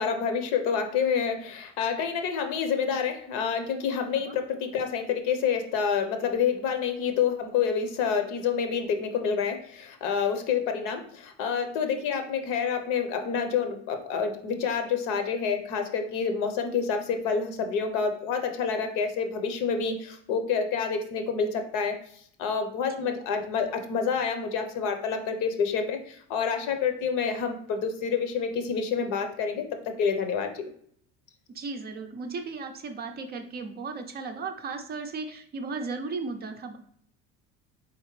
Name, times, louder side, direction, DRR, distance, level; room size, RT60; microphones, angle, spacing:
voice 1, 0.0-22.0 22.4-30.7, left 6 dB, 70° left, 7 dB, 0.8 m, -28 dB
voice 2, 31.5-36.8, right 4 dB, 30° right, 6 dB, 0.4 m, -36 dB
4.1 x 3.6 x 3.1 m, 0.64 s
cardioid pair, 135°, 32 cm